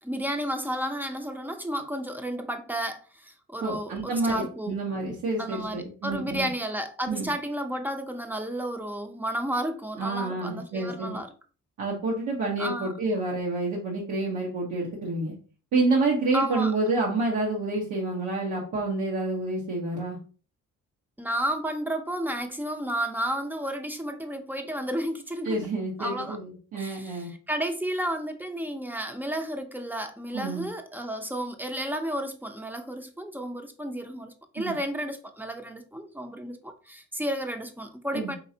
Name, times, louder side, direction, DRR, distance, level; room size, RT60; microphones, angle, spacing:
voice 1, 0.0-4.8 5.4-11.3 12.6-12.9 16.3-16.7 21.2-25.6 26.0-26.4 26.7-27.2 27.5-38.4, right 1 dB, 5° right, 0.6 m, -32 dB
voice 2, 3.6-6.5 7.1-7.3 10.0-11.2 11.8-15.3 15.7-20.2 25.4-27.3 30.3-30.7 34.6-34.7 38.1-38.3, right 2 dB, 75° right, 1.1 m, -28 dB
4.4 x 3.2 x 2.7 m
cardioid pair, 90°, 30 cm